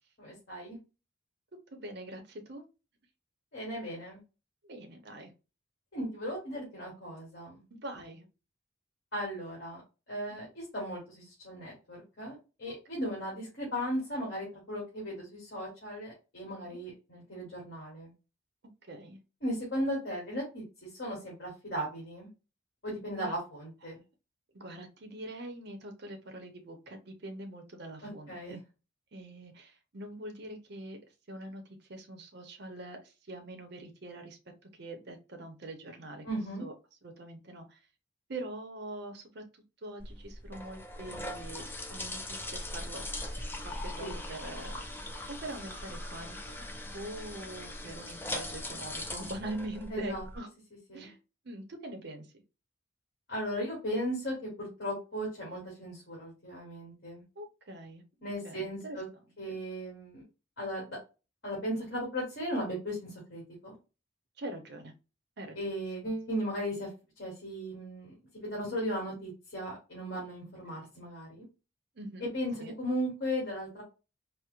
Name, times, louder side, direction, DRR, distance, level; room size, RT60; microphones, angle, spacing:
voice 1, 0.2-0.8 3.5-4.2 5.9-7.6 9.1-9.8 10.1-18.1 19.4-20.6 20.9-22.3 22.8-24.0 28.0-28.6 36.2-36.7 44.0-44.2 49.9-50.2 50.9-51.1 53.3-57.2 58.2-59.1 59.4-60.2 60.6-61.0 61.4-63.7 65.5-66.9 67.2-68.1 68.4-71.4 72.3-73.8, equal, 55° left, -4 dB, 1.6 m, -36 dB
voice 2, 1.7-2.6 4.6-5.3 7.8-8.3 10.3-10.4 12.7-12.8 16.6-16.8 18.9-19.2 23.1-23.3 23.9-24.0 24.5-28.6 29.1-31.0 31.3-31.6 31.9-34.4 34.8-36.3 36.6-36.7 37.0-37.8 38.3-39.4 39.8-43.4 43.8-44.8 45.4-46.6 46.9-50.5 50.9-51.2 51.4-52.3 57.4-58.0 58.4-59.0 59.5-59.6 64.4-64.9 65.4-65.6 66.0-66.1 70.7-70.9 72.0-72.3 72.6-72.7, right 1 dB, 55° right, 5 dB, 0.7 m, -43 dB
sound 1, 40.0-50.4, left 1 dB, 10° left, 0.4 m, -40 dB
4.3 x 2.0 x 2.4 m, 0.30 s
head